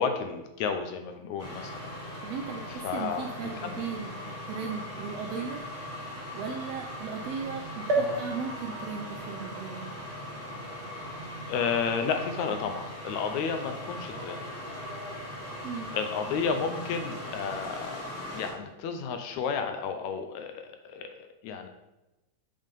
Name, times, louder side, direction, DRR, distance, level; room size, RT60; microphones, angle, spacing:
voice 1, 0.0-1.8 2.7-3.8 8.0-8.2 11.5-14.5 15.9-18.0 18.3-21.7, left 6 dB, 80° left, 7 dB, 1.9 m, -32 dB
sound 1, 1.4-18.5, equal, 5° left, 1.9 m, -39 dB
voice 2, 2.2-5.6 6.3-9.9 15.6-15.9, right 6 dB, 85° right, 3 dB, 1.4 m, -37 dB
sound 2, 7.9-11.6 12.2-12.3 12.5-12.6, right 2 dB, 65° right, 1.4 m, -34 dB
5.5 x 5.4 x 5.2 m, 0.99 s
omnidirectional pair, 3.5 m